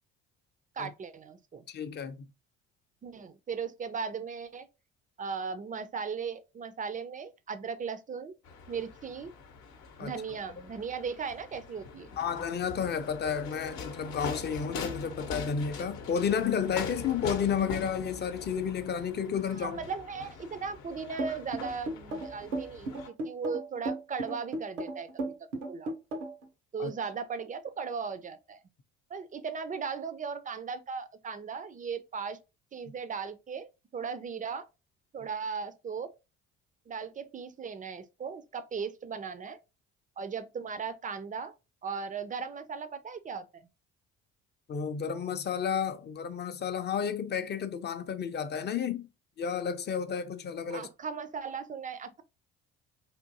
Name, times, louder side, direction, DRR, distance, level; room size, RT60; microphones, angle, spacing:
voice 1, 0.8-1.6 3.0-4.7 5.2-8.3 8.7-9.3 10.0-12.2 19.5-25.9 26.7-28.6 29.1-32.4 32.7-34.7 35.1-36.1 36.9-39.6 40.2-41.5 41.8-43.6 50.7-52.2, right 5 dB, 25° right, 0.4 m, -37 dB
voice 2, 1.7-2.2 10.0-10.1 12.2-19.8 26.8-26.9 44.7-49.1 49.4-50.9, left 7 dB, 30° left, 0.5 m, -31 dB
sound 1, 8.4-23.1, left 5 dB, 60° left, 0.8 m, -42 dB
sound 2, 21.2-26.4, right 2 dB, 80° right, 0.7 m, -35 dB
3.6 x 2.5 x 2.6 m
hypercardioid pair, 50°, 36 cm